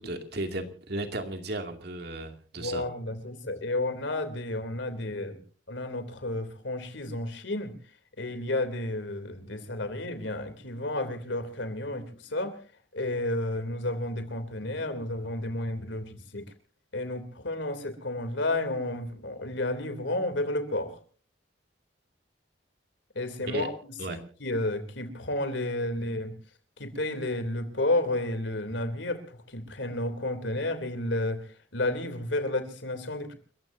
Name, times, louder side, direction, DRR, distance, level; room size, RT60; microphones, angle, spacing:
voice 1, 0.0-2.8 23.5-23.7 24.0-24.2, right 2 dB, 60° right, 6 dB, 2.5 m, -34 dB
voice 2, 2.6-5.4 5.7-7.8 8.2-12.6 12.9-16.5 16.9-21.0 23.1-26.3 26.8-33.3, left 1 dB, 85° left, 10 dB, 3.1 m, -31 dB
29.5 x 15.0 x 2.7 m, 0.40 s
head